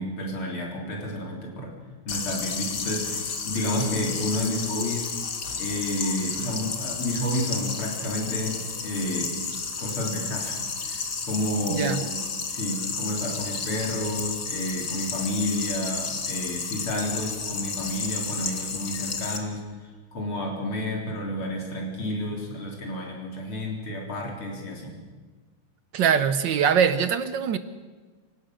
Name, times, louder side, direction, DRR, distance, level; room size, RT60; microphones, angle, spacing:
voice 1, 0.0-1.7 2.1-5.1 5.6-9.4 9.8-12.1 12.5-25.0, left 1 dB, 90° left, 0 dB, 4.4 m, -30 dB
sound 1, 2.1-19.4, left 5 dB, 50° left, 2.3 m, -32 dB
voice 2, 11.7-12.0 25.9-27.6, right 7 dB, 65° right, 12 dB, 1.4 m, -22 dB
28.0 x 17.5 x 6.3 m, 1.4 s
omnidirectional pair, 2.3 m